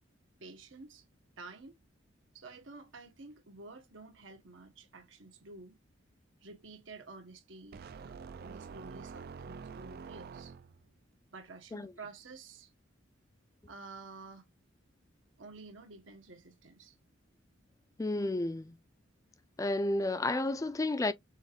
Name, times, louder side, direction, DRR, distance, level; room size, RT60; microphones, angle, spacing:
voice 1, 0.4-1.0 1.4-1.7 2.3-5.8 6.4-10.5 11.3-12.7 13.7-14.4 15.4-17.0, right 3 dB, 75° right, 1.3 m, -50 dB
sound 1, 7.7-10.9, right 5 dB, 50° right, 0.4 m, -46 dB
voice 2, 18.0-18.7 19.6-21.1, left 2 dB, 15° left, 0.4 m, -31 dB
6.3 x 2.5 x 3.4 m
head